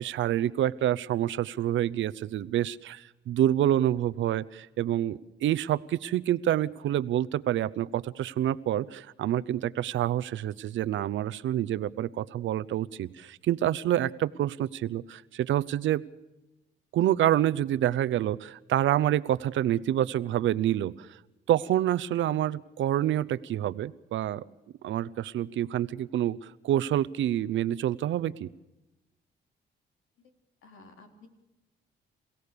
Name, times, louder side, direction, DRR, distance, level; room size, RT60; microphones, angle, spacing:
voice 1, 0.0-16.0 16.9-21.2 21.5-24.4 24.8-28.5, right 12 dB, 70° right, 16 dB, 0.8 m, -27 dB
voice 2, 30.6-31.3, left 3 dB, 80° left, 4 dB, 3.9 m, -53 dB
27.5 x 17.0 x 6.8 m, 0.99 s
cardioid pair, 90°, 20 cm